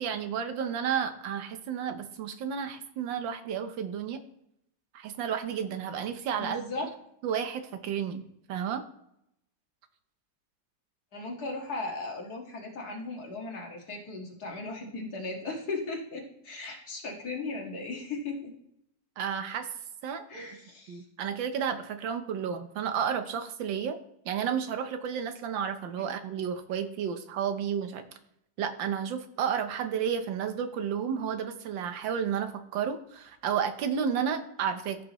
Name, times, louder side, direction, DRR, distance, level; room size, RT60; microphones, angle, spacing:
voice 1, 0.0-4.2 4.9-6.9 7.2-8.2 8.5-8.8 19.2-19.7 20.0-20.2 20.9-24.0 24.2-28.0 28.6-35.0, right 7 dB, 90° right, 9 dB, 1.6 m, -32 dB
voice 2, 6.4-6.9 11.1-18.5 20.3-21.0, left 3 dB, 55° left, -1 dB, 2.3 m, -37 dB
14.5 x 6.2 x 3.0 m, 0.77 s
omnidirectional pair, 2.0 m